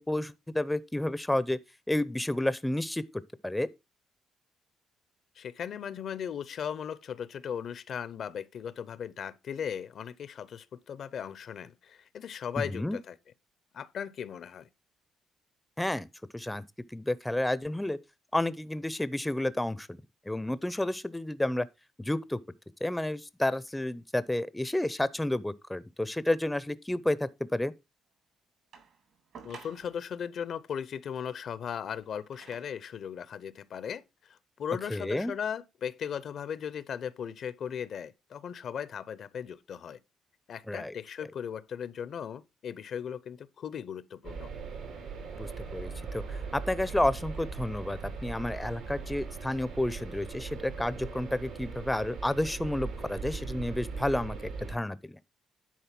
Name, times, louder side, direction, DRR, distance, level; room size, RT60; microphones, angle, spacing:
voice 1, 0.0-1.6 1.9-3.0 3.4-3.7 12.6-13.0 15.8-16.1 16.3-16.7 16.9-18.0 18.3-19.9 20.3-21.7 22.0-22.4 22.8-27.7 34.9-35.3 40.7-40.9 45.3-55.2, left 1 dB, 10° left, 0.6 m, -31 dB
voice 2, 5.4-13.2 13.7-14.7 29.4-40.0 40.5-44.5, left 8 dB, 65° left, 0.7 m, -37 dB
sound 1, 28.7-30.1 31.7-32.9 33.7-33.8, right 6 dB, 70° right, 3.2 m, -52 dB
sound 2, 44.2-54.7, right 4 dB, 90° right, 3.7 m, -39 dB
10.0 x 4.0 x 5.9 m
cardioid pair, 90°, 0 cm